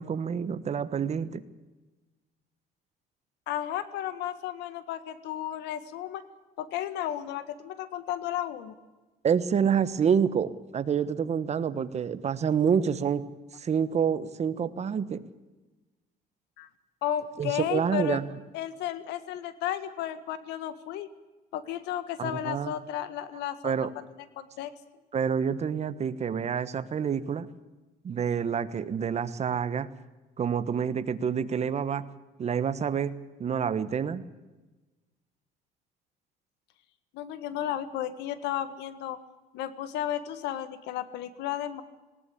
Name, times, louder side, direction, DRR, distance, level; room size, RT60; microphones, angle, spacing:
voice 1, 0.0-1.4 9.2-13.2 13.6-15.2 17.4-18.3 22.2-22.7 23.6-23.9 25.1-27.5 28.0-29.9 30.4-32.0 32.4-33.1 33.4-34.2, right 7 dB, 40° right, 13 dB, 1.3 m, -27 dB
voice 2, 3.5-6.2 6.6-8.7 16.6-16.7 17.0-18.2 18.5-21.1 21.5-23.7 24.2-24.7 37.1-39.2 39.5-41.8, left 11 dB, 90° left, 13 dB, 1.6 m, -33 dB
19.5 x 17.5 x 8.6 m, 1.2 s
cardioid pair, 110°, 17 cm